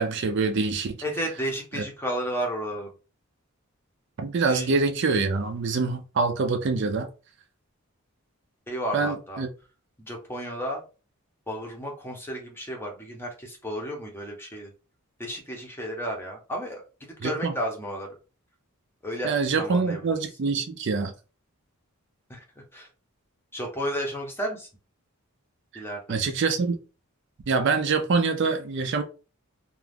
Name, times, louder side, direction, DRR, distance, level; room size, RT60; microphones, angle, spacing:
voice 1, 0.0-1.0 1.8-1.9 4.2-7.1 8.9-9.5 17.2-17.5 19.2-21.1 25.7-25.8 26.1-26.8 27.5-29.0, right 4 dB, 50° right, 0.4 m, -25 dB
voice 2, 1.0-2.9 4.5-4.7 8.7-9.4 10.0-10.8 11.5-14.7 15.2-16.8 17.2-18.1 19.0-20.1 22.3-22.9 23.5-24.7 25.7-26.2, equal, 10° left, 0.6 m, -32 dB
2.4 x 2.3 x 3.3 m
head